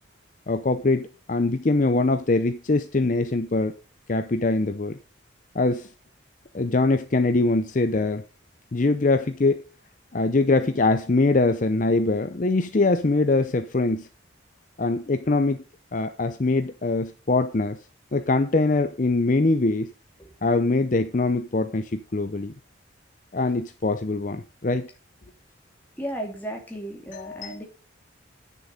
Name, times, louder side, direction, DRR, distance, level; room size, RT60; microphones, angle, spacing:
voice 1, 0.5-3.7 4.1-5.0 5.5-5.9 6.5-8.2 8.7-9.6 10.1-14.1 14.8-15.6 15.9-17.8 18.1-19.9 20.4-22.5 23.3-24.9 27.1-27.6, left 3 dB, 40° left, 9 dB, 0.6 m, -23 dB
voice 2, 26.0-27.6, right 1 dB, 10° left, 1 dB, 2.6 m, -34 dB
9.7 x 6.9 x 5.2 m, 0.35 s
head